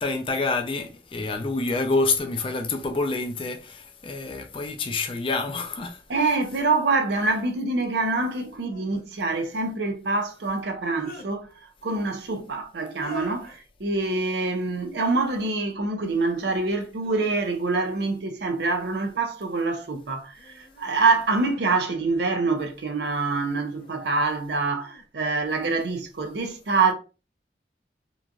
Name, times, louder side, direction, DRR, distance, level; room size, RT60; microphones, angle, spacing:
voice 1, 0.0-6.0, left 3 dB, 30° left, 0.3 m, -27 dB
sound 1, 6.1-6.2 8.5-9.1 10.6-11.3 12.8-13.6 15.1-15.5 16.0-16.6 17.0-17.9 19.1-19.7 20.3-22.4 23.4-23.9 24.5-25.0, left 1 dB, 55° left, 0.9 m, -47 dB
voice 2, 6.1-26.9, right 3 dB, 70° right, 0.6 m, -25 dB
3.0 x 2.5 x 2.3 m
head